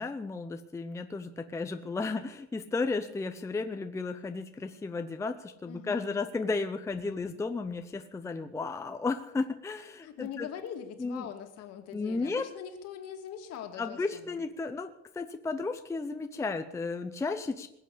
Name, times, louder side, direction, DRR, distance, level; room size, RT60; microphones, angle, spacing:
voice 1, 0.0-10.5 11.0-11.3 11.9-12.5 13.8-17.7, left 3 dB, 10° left, 7 dB, 0.6 m, -34 dB
voice 2, 5.7-6.3 10.0-14.4, left 8 dB, 60° left, 6 dB, 2.3 m, -42 dB
21.0 x 8.0 x 8.3 m, 0.82 s
cardioid pair, 170°, 29 cm